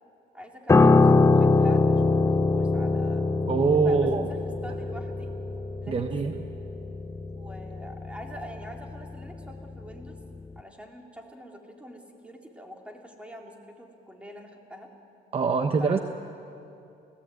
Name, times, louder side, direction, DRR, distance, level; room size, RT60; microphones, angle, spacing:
voice 1, 0.3-3.3 3.8-4.0 4.3-4.4 4.6-5.3 5.8-6.0 7.4-10.2 10.6-14.9 15.8-16.0, equal, 5° right, 1 dB, 3.7 m, -44 dB
Piano, 0.7-10.1 10.3-10.6, left 3 dB, 15° left, 0.7 m, -23 dB
voice 2, 3.5-4.3 5.9-6.4 15.3-16.0, right 5 dB, 35° right, 6 dB, 1.2 m, -24 dB
29.0 x 18.5 x 9.3 m, 2.7 s
cardioid pair, 110°, 17 cm